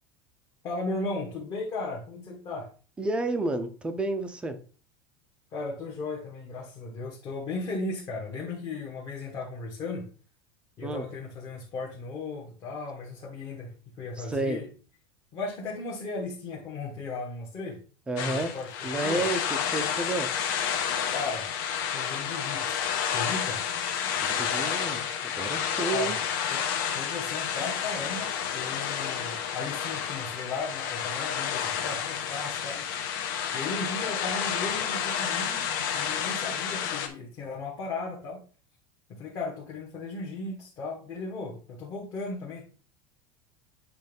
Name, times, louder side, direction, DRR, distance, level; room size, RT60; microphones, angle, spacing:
voice 1, 0.6-2.7 5.5-10.1 10.8-14.7 15.3-17.8 18.2-19.2 21.1-21.5 21.9-22.8 23.1-23.6 25.9-26.2 26.5-32.9 33.5-35.7 35.9-38.4 39.1-42.6, left 3 dB, 25° left, -3 dB, 1.5 m, -36 dB
voice 2, 3.0-4.6 10.8-11.1 14.2-14.6 18.1-18.5 18.8-20.3 24.2-25.0 25.4-26.2, right 2 dB, 10° right, 8 dB, 0.6 m, -30 dB
sound 1, 18.2-37.1, left 8 dB, 55° left, 1.2 m, -30 dB
8.0 x 3.2 x 5.3 m, 0.38 s
supercardioid pair, 175°, 13 cm